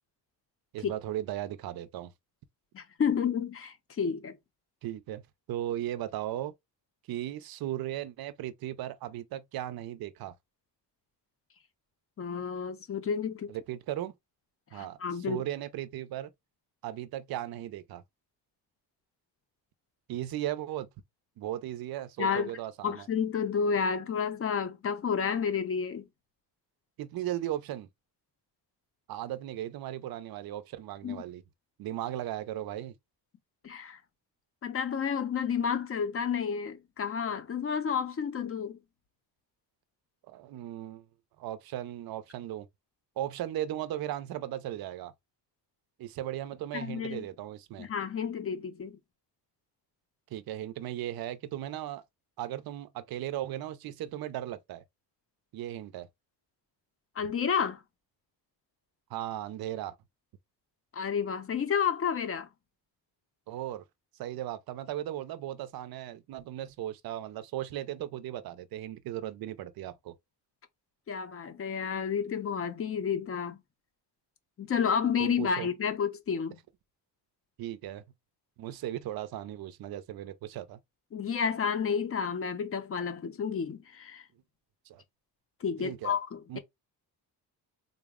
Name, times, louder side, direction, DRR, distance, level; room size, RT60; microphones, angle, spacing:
voice 1, 0.7-2.1 4.8-5.2 5.5-6.5 7.1-10.3 13.5-14.1 14.7-15.0 15.3-16.3 16.8-18.0 20.1-20.9 21.4-23.1 27.0-27.9 29.1-31.4 31.8-33.0 40.3-41.1 41.4-42.7 43.2-45.1 46.0-47.9 50.3-52.0 52.4-54.8 55.5-56.1 59.1-60.0 63.5-63.8 64.2-70.1 75.2-75.7 77.6-78.0 78.6-80.8 84.9-85.0 85.8-86.1 86.5-86.6, right 12 dB, 60° right, 0.5 m, -37 dB
voice 2, 2.7-4.4 12.2-13.5 14.7-15.4 22.2-22.5 22.8-26.1 31.0-31.2 33.6-34.0 34.6-38.8 46.7-47.3 47.8-49.0 57.2-57.8 60.9-62.5 71.1-73.6 74.6-76.6 81.1-84.2 85.6-86.6, left 6 dB, 35° left, 0.5 m, -31 dB
3.8 x 2.1 x 3.5 m
wide cardioid pair, 165°, 41 cm